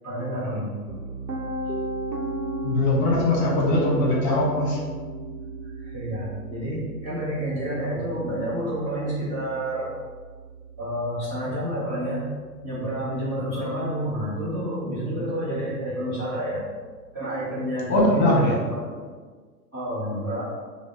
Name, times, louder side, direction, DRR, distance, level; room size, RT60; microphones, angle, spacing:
voice 1, 0.0-0.7 5.6-9.9 10.8-12.3 12.6-16.7 17.1-18.4 18.7-19.1 19.7-20.4, equal, 15° right, -12 dB, 0.7 m, -29 dB
Piano, 0.9-12.8, right 2 dB, 90° right, 0.8 m, -35 dB
voice 2, 2.6-4.8 17.9-18.6, left 1 dB, 40° left, -3 dB, 1.1 m, -21 dB
5.0 x 2.1 x 3.5 m, 1.5 s
figure-of-eight pair, 115°, 50 cm